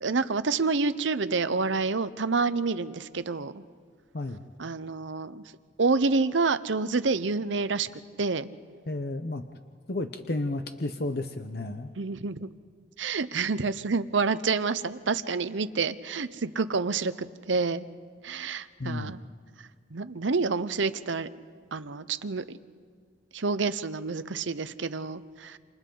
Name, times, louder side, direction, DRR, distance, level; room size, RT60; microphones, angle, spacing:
voice 1, 0.0-3.6 4.6-5.4 5.8-7.9 8.2-8.5 12.0-12.5 13.0-17.8 18.2-19.2 19.9-21.3 21.7-22.6 23.3-25.6, right 4 dB, 80° right, 13 dB, 0.8 m, -28 dB
voice 2, 8.9-9.4 9.9-11.9 18.8-19.1, left 2 dB, 55° left, 7 dB, 0.9 m, -32 dB
29.0 x 28.0 x 3.9 m, 2.1 s
head